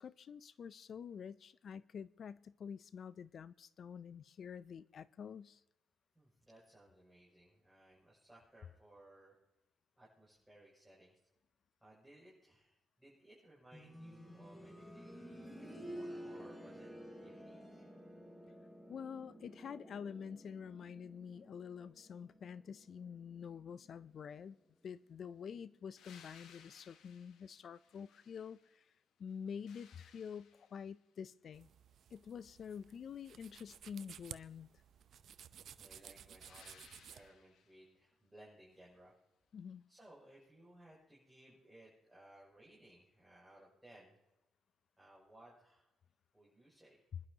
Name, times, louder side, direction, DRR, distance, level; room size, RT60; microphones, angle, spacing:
voice 1, 0.0-5.6 18.9-24.6 24.8-28.9 29.2-31.7 32.1-34.7 39.5-39.8, left 7 dB, 55° left, 0.4 m, -48 dB
voice 2, 6.1-9.3 9.9-11.3 11.8-16.9 17.2-17.9 35.5-39.1 39.6-44.2 45.0-45.9 46.3-47.0, right 1 dB, 5° right, 6.6 m, -62 dB
sound 1, 13.7-24.5 25.9-26.0, equal, 10° left, 4.8 m, -52 dB
sound 2, 26.0-28.9 29.3-31.0 36.4-37.9 40.4-40.5, left 7 dB, 80° left, 1.4 m, -63 dB
sound 3, 31.5-37.3, right 9 dB, 65° right, 0.6 m, -56 dB
26.0 x 11.5 x 2.8 m
cardioid pair, 90°, 0 cm